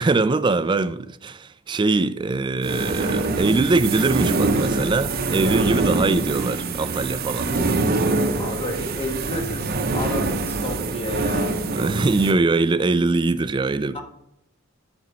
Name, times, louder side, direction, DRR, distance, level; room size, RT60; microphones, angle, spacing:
voice 1, 0.0-7.5 11.7-14.0, right 3 dB, 25° right, 0.4 m, -22 dB
sound 1, 2.6-12.3, right 3 dB, 50° right, 0.7 m, -24 dB
voice 2, 8.3-11.6 13.9-14.0, left 2 dB, 30° left, 1.4 m, -31 dB
9.3 x 5.3 x 4.4 m
head